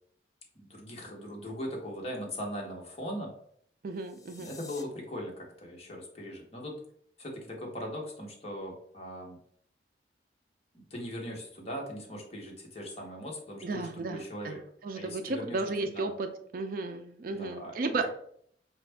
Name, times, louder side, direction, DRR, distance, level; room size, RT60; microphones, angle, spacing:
voice 1, 0.5-3.3 4.4-6.8 7.2-9.4 10.7-14.6 15.0-16.1 17.3-17.7, equal, 35° left, -1 dB, 1.0 m, -40 dB
voice 2, 3.8-4.5 13.6-16.3 16.5-18.1, right 3 dB, 50° right, 7 dB, 0.4 m, -34 dB
sound 1, 3.9-4.8, left 4 dB, 20° left, 0.4 m, -50 dB
5.2 x 2.4 x 3.3 m, 0.65 s
head